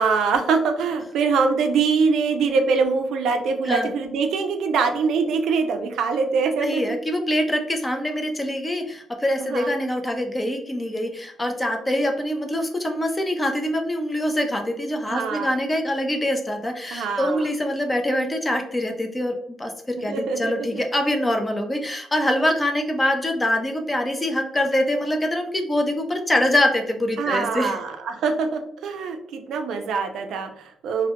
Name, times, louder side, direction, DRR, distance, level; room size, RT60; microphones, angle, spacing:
voice 1, 0.0-6.8 9.4-9.7 15.1-15.5 16.9-17.5 20.1-20.8 27.2-31.1, right 5 dB, 75° right, 6 dB, 0.3 m, -23 dB
voice 2, 6.6-27.7, left 1 dB, 15° left, 4 dB, 0.3 m, -24 dB
2.1 x 2.1 x 2.8 m, 0.66 s
cardioid pair, 155°, 0 cm